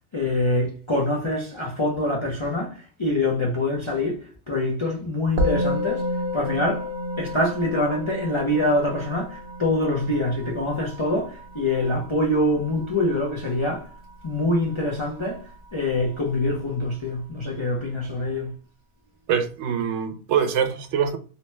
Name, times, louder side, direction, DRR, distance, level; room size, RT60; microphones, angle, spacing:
voice 1, 0.1-6.1 6.3-6.9 7.2-13.9 14.2-18.6, left 1 dB, 35° left, 0.5 m, -25 dB
Musical instrument, 5.4-14.9, left 1 dB, 55° right, 0.6 m, -31 dB
voice 2, 19.3-21.2, right 7 dB, 80° right, 0.9 m, -24 dB
2.8 x 2.1 x 3.0 m
omnidirectional pair, 1.2 m